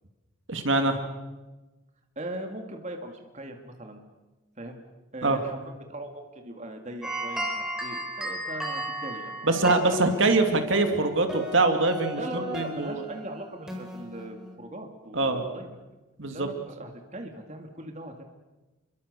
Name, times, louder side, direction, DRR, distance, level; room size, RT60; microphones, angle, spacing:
voice 1, 0.5-1.0 5.2-5.4 9.4-12.9 15.1-15.4 16.2-16.5, right 3 dB, 60° right, 6 dB, 2.5 m, -24 dB
voice 2, 2.2-4.0 4.6-4.8 5.1-5.6 5.9-10.0 12.1-15.7 16.3-18.2, right 1 dB, 35° right, 4 dB, 2.4 m, -39 dB
sound 1, 7.0-14.5, equal, 5° right, 4.8 m, -36 dB
28.5 x 23.0 x 6.9 m, 1.1 s
head